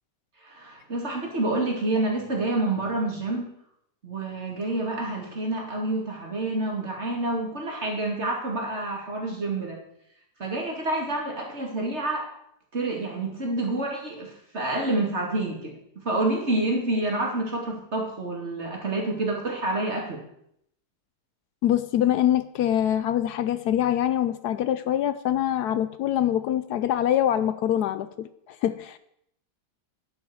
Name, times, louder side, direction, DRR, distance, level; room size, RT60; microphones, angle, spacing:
voice 1, 0.4-3.5 4.0-9.8 10.4-12.3 12.7-15.8 16.0-20.2, right 2 dB, 40° right, 0 dB, 3.0 m, -28 dB
voice 2, 21.6-29.0, left 11 dB, 75° left, 13 dB, 1.1 m, -24 dB
10.5 x 8.8 x 6.3 m, 0.72 s
omnidirectional pair, 1.8 m